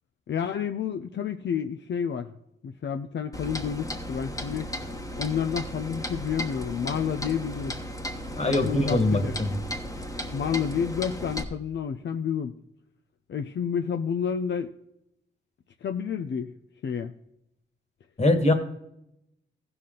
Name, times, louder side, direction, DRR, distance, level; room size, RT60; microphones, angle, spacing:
voice 1, 0.3-2.3 2.6-4.7 5.2-7.8 8.4-9.4 10.3-12.5 13.3-14.7 15.8-16.5 16.8-17.1, left 7 dB, 70° left, 6 dB, 0.5 m, -30 dB
Clock, 3.3-11.4, equal, 15° left, 1.2 m, -35 dB
voice 2, 8.4-9.6 18.2-18.5, left 1 dB, 35° left, 6 dB, 1.7 m, -22 dB
15.0 x 5.9 x 3.8 m, 0.80 s
cardioid pair, 80°, 20 cm